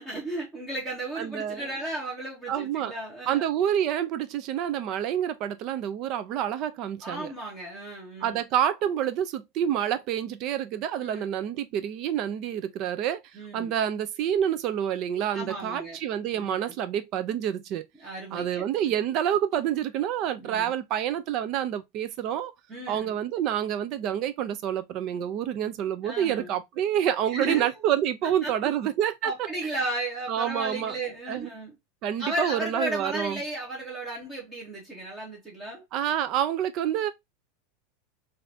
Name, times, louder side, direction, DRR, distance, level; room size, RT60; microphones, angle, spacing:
voice 1, 0.0-3.4 7.0-8.4 11.0-11.3 13.3-13.7 15.3-16.0 16.4-16.6 18.0-18.8 20.4-20.7 22.7-23.2 26.0-26.5 27.3-27.7 28.2-28.5 29.2-31.7 32.2-35.8, right 1 dB, 15° right, 1.2 m, -34 dB
voice 2, 1.2-1.7 2.5-2.9 3.3-7.3 8.2-13.2 13.5-17.8 18.3-22.5 22.9-29.3 30.3-30.9 31.3-31.5 32.0-33.4 35.9-37.1, right 10 dB, 45° right, 0.5 m, -28 dB
4.0 x 2.6 x 2.7 m
supercardioid pair, 150°, 0 cm